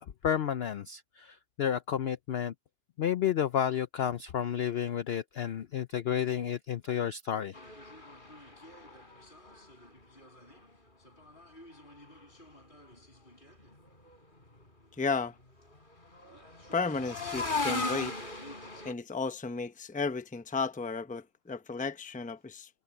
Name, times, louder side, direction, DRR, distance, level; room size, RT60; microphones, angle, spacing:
voice 1, 0.2-2.5 3.0-7.5, left 9 dB, 75° left, 0.5 m, -31 dB
sound 1, 7.5-10.7 11.1-13.0 13.3-13.5 13.9-14.2 15.7-18.9, left 3 dB, 30° left, 4.1 m, -39 dB
voice 2, 15.0-15.4 16.7-18.2 18.8-22.7, left 4 dB, 10° left, 0.5 m, -33 dB
omnidirectional pair, 1.7 m